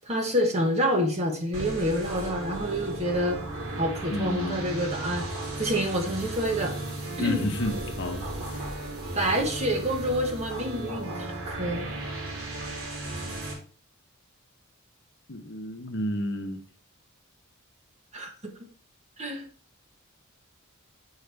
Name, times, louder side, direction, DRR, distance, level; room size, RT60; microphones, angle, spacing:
voice 1, 0.0-3.4 3.8-5.3 5.6-6.8 7.2-7.5 9.1-11.8 18.1-18.5 19.2-19.4, equal, 30° right, 3 dB, 1.2 m, -27 dB
sound 1, 1.5-13.5, right 2 dB, 80° right, 3.0 m, -35 dB
voice 2, 4.1-4.7 7.2-8.2 15.3-16.6, left 1 dB, 55° left, 5 dB, 0.9 m, -31 dB
8.3 x 4.8 x 3.4 m, 0.41 s
head